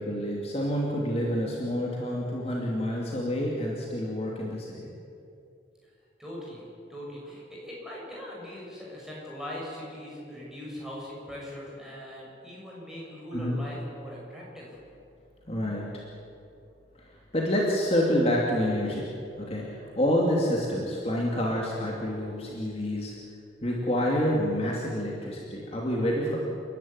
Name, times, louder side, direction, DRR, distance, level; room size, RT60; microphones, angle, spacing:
voice 1, 0.0-4.9 13.3-13.6 15.5-15.9 17.0-17.1 17.3-19.1 19.4-23.1 23.6-26.5, equal, 35° left, -2 dB, 2.7 m, -28 dB
voice 2, 6.2-14.8, left 1 dB, 5° right, -5 dB, 6.6 m, -40 dB
29.5 x 12.0 x 9.6 m, 2.6 s
head